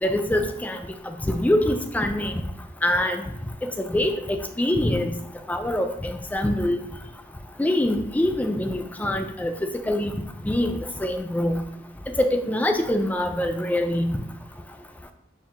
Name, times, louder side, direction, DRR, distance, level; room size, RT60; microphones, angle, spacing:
voice 1, 0.0-0.8 1.1-2.3 2.8-3.2 3.6-4.1 4.6-5.1 5.5-6.8 7.6-10.1 10.4-10.7 11.0-11.6 12.2-14.2, left 1 dB, 10° left, 6 dB, 0.3 m, -24 dB
4.4 x 2.4 x 3.6 m, 0.76 s
head